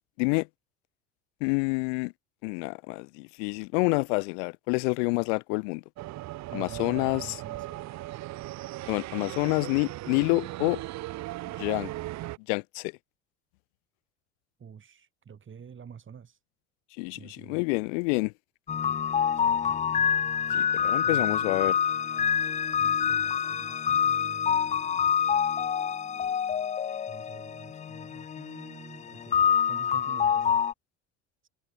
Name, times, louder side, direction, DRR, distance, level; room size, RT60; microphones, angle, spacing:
voice 1, 1.4-2.1 2.4-5.8 6.5-7.4 8.9-10.8 11.6-11.9 12.5-12.9 17.0-18.3 20.5-21.8, left 34 dB, 75° left, 0.6 m, -28 dB
sound 1, 6.0-12.4, right 17 dB, 50° right, 0.7 m, -38 dB
voice 2, 6.5-8.0 14.6-16.4 17.1-17.6 19.3-19.6 21.0-21.7 22.8-25.3 27.1-29.4 29.7-30.6 31.4-31.5, right 7 dB, 35° right, 3.5 m, -48 dB
sound 2, 18.7-30.7, left 8 dB, 20° left, 0.4 m, -27 dB
hypercardioid pair, 80°, 36 cm